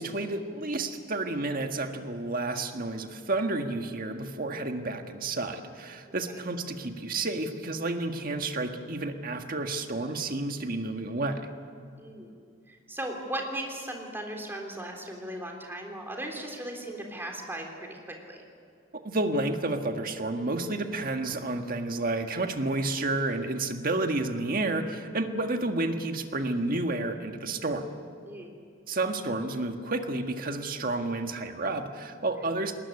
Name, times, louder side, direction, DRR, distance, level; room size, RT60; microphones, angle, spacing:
voice 1, 0.0-11.5 19.0-27.8 28.9-32.7, right 2 dB, 45° right, 5 dB, 1.7 m, -30 dB
voice 2, 12.0-12.3 12.7-18.4 28.3-28.5, right 1 dB, 10° right, 1 dB, 3.5 m, -37 dB
20.5 x 19.5 x 9.7 m, 2.4 s
head